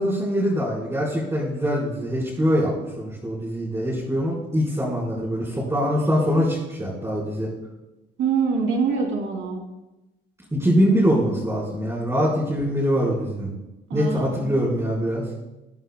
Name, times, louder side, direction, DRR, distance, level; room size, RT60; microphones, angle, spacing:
voice 1, 0.0-7.5 10.5-13.5 13.9-15.2, equal, 15° right, -7 dB, 4.4 m, -23 dB
voice 2, 8.2-9.6 13.9-14.6, right 5 dB, 80° right, 1 dB, 2.9 m, -24 dB
23.0 x 8.9 x 2.3 m, 0.98 s
cardioid pair, 90°, 20 cm